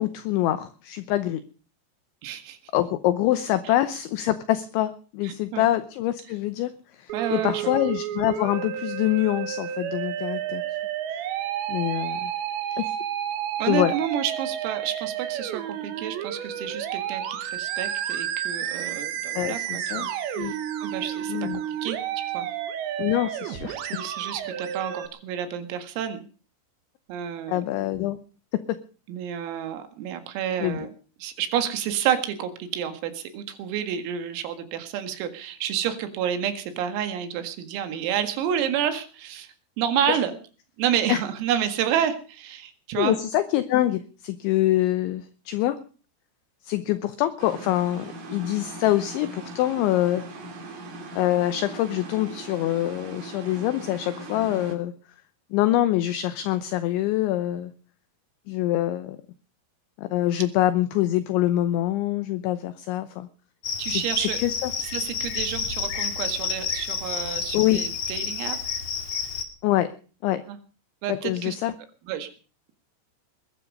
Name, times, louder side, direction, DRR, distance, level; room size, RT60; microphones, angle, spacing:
voice 1, 0.0-1.4 2.7-6.7 7.0-10.6 11.1-11.2 11.7-12.3 12.8-12.9 13.7-13.9 19.3-20.1 20.4-20.5 21.3-21.6 23.0-23.8 27.5-28.2 30.6-30.9 40.1-40.2 41.1-41.2 43.0-45.8 46.6-50.2 51.2-54.9 55.5-57.7 58.5-59.2 60.0-63.3 63.9-64.7 67.5-67.8 69.6-69.9 70.2-70.4 71.1-71.7, left 14 dB, 75° left, 11 dB, 2.9 m, -25 dB
voice 2, 2.2-2.6 3.7-3.8 5.2-5.7 7.1-7.8 13.6-20.1 20.4-20.6 20.8-21.4 21.8-22.5 23.8-26.2 27.1-27.6 29.1-30.9 31.2-40.4 40.8-43.2 63.8-64.4 64.8-68.6 70.5-70.6 71.0-71.6 72.1-72.3, right 9 dB, 85° right, 8 dB, 4.5 m, -29 dB
Musical instrument, 7.1-25.1, right 10 dB, 65° right, 3.5 m, -31 dB
sound 1, 47.4-54.7, right 2 dB, 45° right, 4.1 m, -40 dB
Cricket, 63.6-69.4, left 6 dB, 45° left, 2.2 m, -30 dB
21.0 x 12.0 x 5.4 m, 0.39 s
omnidirectional pair, 6.0 m